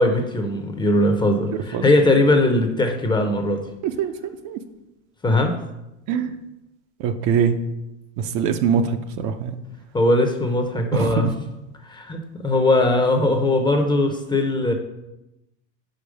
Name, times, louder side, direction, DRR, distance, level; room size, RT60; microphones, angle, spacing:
voice 1, 0.0-3.6 5.2-5.5 9.9-11.3 11.9-14.7, left 2 dB, 15° left, 5 dB, 0.6 m, -20 dB
voice 2, 7.0-7.6 8.2-9.6 10.9-11.3, right 7 dB, 50° right, 7 dB, 0.6 m, -22 dB
5.2 x 4.5 x 5.0 m, 0.93 s
hypercardioid pair, 110°, 35 cm